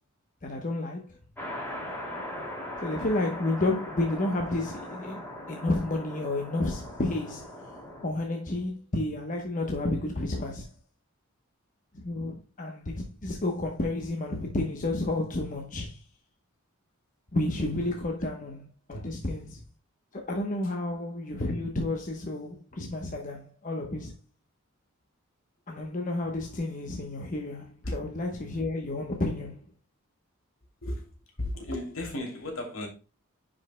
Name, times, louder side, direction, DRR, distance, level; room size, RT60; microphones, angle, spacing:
voice 1, 0.4-1.2 2.8-10.7 11.9-16.0 17.3-19.6 20.1-24.1 25.7-29.6, left 2 dB, 40° left, 1.0 m, -31 dB
sound 1, 1.4-8.1, left 1 dB, 10° left, 2.5 m, -39 dB
voice 2, 18.9-19.2 27.8-28.0 30.8-31.1 31.4-32.9, left 1 dB, 70° left, 2.8 m, -34 dB
10.0 x 5.2 x 2.2 m
head